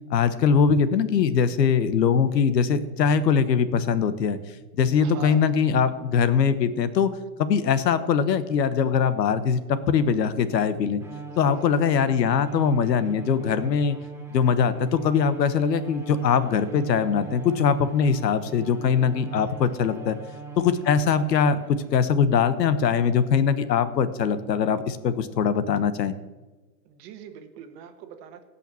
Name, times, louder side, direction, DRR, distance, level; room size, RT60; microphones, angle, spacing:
voice 1, 0.1-4.4 4.8-7.1 7.4-11.0 11.4-14.0 14.3-20.2 20.6-26.1, left 6 dB, 80° left, 14 dB, 1.3 m, -22 dB
voice 2, 5.0-5.5 11.3-11.9 18.0-18.1 26.9-28.4, right 8 dB, 35° right, 6 dB, 1.6 m, -43 dB
Bowed string instrument, 11.0-22.2, right 5 dB, 5° right, 1.0 m, -40 dB
17.0 x 5.8 x 7.0 m, 1.2 s
hypercardioid pair, 140°, 49 cm